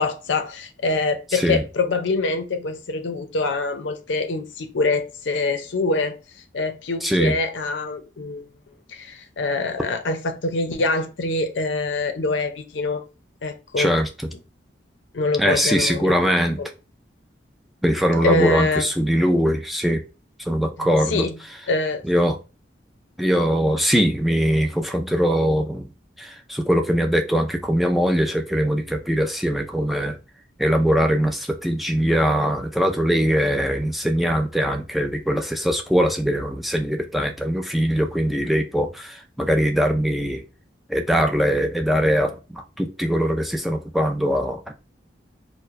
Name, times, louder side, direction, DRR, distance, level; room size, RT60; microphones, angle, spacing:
voice 1, 0.0-6.1 6.5-8.5 8.9-13.0 13.4-13.9 15.1-16.1 16.6-16.7 18.2-18.9 20.8-21.4 21.7-22.0, left 3 dB, 85° left, 0.6 m, -25 dB
voice 2, 7.0-7.3 13.8-14.1 15.4-16.6 17.8-20.0 20.4-21.3 22.0-22.4 23.2-25.9 26.2-30.2 30.6-40.4 40.9-44.7, equal, ahead, 0.3 m, -21 dB
4.5 x 2.1 x 2.4 m
head